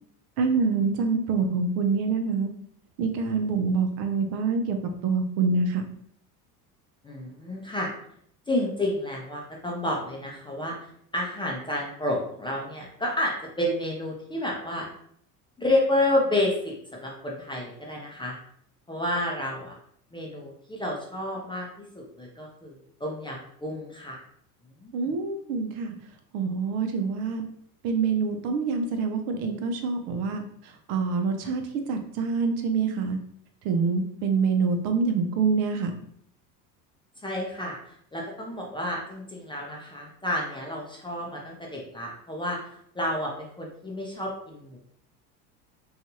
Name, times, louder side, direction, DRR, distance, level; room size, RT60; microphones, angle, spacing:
voice 1, 0.4-2.5 3.0-4.8 5.0-5.8 24.9-25.9 26.3-27.4 27.8-30.4 30.9-33.2 33.6-35.9, right 4 dB, 55° right, 5 dB, 0.6 m, -26 dB
voice 2, 7.0-7.9 8.5-10.8 11.1-14.9 15.6-18.4 18.9-19.7 20.1-24.2 24.8-24.9 37.2-44.8, left 1 dB, 10° left, -2 dB, 0.5 m, -30 dB
2.6 x 2.4 x 2.8 m, 0.66 s
hypercardioid pair, 85°, 49 cm